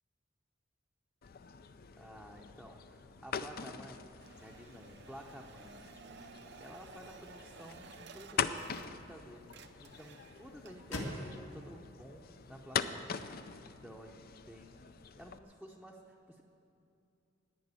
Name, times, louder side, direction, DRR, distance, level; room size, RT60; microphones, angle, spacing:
sound 1, 1.2-15.4, left 7 dB, 50° left, 0.5 m, -43 dB
voice 1, 2.0-4.1 4.4-5.8 6.6-13.2 13.6-14.2 14.4-16.4, equal, ahead, -2 dB, 0.7 m, -52 dB
sound 2, 4.2-9.2 9.4-10.9, right 5 dB, 60° right, 0.6 m, -55 dB
sound 3, 7.4-13.5, left 1 dB, 75° left, 1.7 m, -48 dB
11.0 x 9.1 x 9.8 m, 2.6 s
head